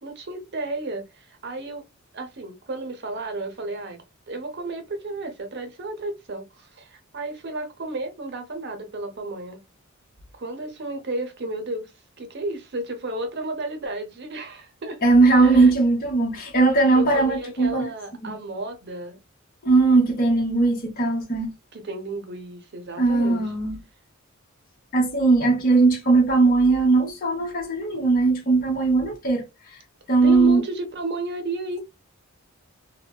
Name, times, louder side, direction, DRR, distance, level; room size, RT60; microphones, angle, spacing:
voice 1, 0.0-1.8 2.1-9.6 10.3-11.9 12.2-15.0 15.4-15.7 16.9-19.2 21.7-23.4 25.5-25.6 30.2-31.8, right 2 dB, 50° right, 0.7 m, -33 dB
voice 2, 15.0-17.9 18.2-18.3 19.6-21.5 23.0-23.7 24.9-29.5 30.1-30.6, right 3 dB, 45° left, 0.8 m, -19 dB
3.3 x 2.1 x 2.2 m
head